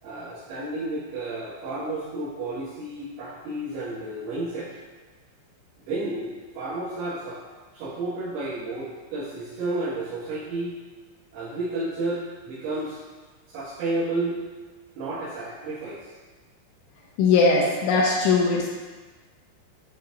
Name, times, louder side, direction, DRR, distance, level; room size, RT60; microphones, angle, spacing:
voice 1, 0.0-4.7 5.8-7.4 7.7-10.8 11.3-13.0 13.5-14.4 14.9-16.1, right 2 dB, 90° right, -14 dB, 4.9 m, -31 dB
voice 2, 17.2-18.7, left 4 dB, 75° left, -2 dB, 3.0 m, -20 dB
10.5 x 6.6 x 2.7 m, 1.3 s
omnidirectional pair, 6.0 m